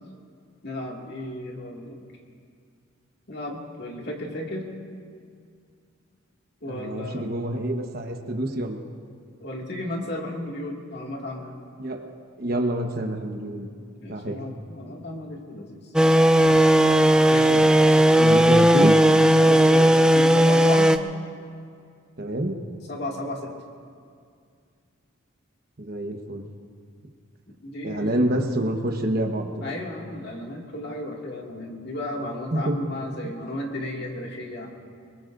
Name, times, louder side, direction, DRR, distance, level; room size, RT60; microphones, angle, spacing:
voice 1, 0.6-2.0 3.3-4.7 6.6-7.2 9.4-11.6 14.0-15.9 17.3-18.6 19.4-20.9 22.9-23.5 27.6-28.3 29.6-34.7, left 1 dB, 50° left, -1 dB, 2.2 m, -34 dB
voice 2, 6.7-8.8 11.8-12.1 12.4-13.7 14.1-14.4 18.2-19.0 22.2-22.6 25.8-26.5 27.8-29.6 32.5-32.8 33.2-33.3, right 1 dB, 45° right, 3 dB, 1.2 m, -27 dB
sound 1, 16.0-21.0, right 1 dB, 5° right, 0.3 m, -16 dB
24.5 x 21.5 x 2.6 m, 2.2 s
head